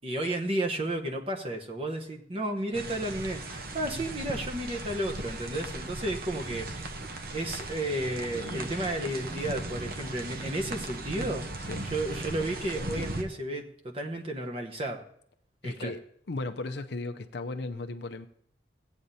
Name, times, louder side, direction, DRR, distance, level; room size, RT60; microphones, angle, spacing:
voice 1, 0.0-7.1 7.3-11.6 11.9-15.0 15.6-15.9, right 1 dB, 30° right, 1.0 m, -33 dB
sound 1, 2.7-13.2, right 2 dB, 50° right, 0.9 m, -37 dB
voice 2, 15.6-16.0 16.3-18.3, left 2 dB, 60° left, 0.6 m, -35 dB
16.0 x 8.8 x 2.7 m
head